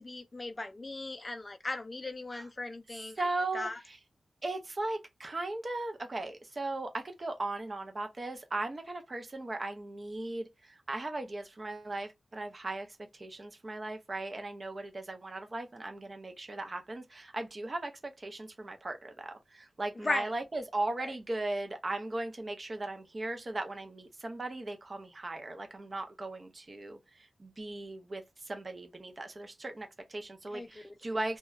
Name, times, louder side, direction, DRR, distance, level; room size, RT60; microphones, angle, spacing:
voice 1, 0.0-3.3 3.5-3.8 20.0-20.3 21.0-21.1 30.5-31.2, left 2 dB, 20° left, 0.4 m, -38 dB
voice 2, 3.2-3.7 4.4-10.5 10.9-12.9 13.2-19.3 19.8-27.0 27.4-28.2 28.5-31.4, right 2 dB, 30° right, 0.5 m, -37 dB
3.0 x 2.2 x 2.3 m
wide cardioid pair, 175°, 0 cm